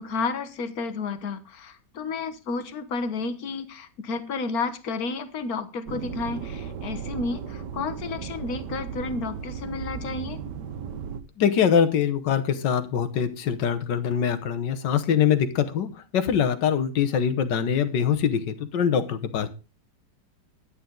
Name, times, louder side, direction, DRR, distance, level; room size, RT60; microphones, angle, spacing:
voice 1, 0.0-10.4, left 4 dB, 55° left, 1.5 m, -31 dB
sound 1, 5.9-11.2, right 6 dB, 70° right, 1.5 m, -35 dB
voice 2, 11.4-19.5, left 8 dB, 70° left, 1.6 m, -23 dB
11.0 x 9.9 x 3.8 m
omnidirectional pair, 2.0 m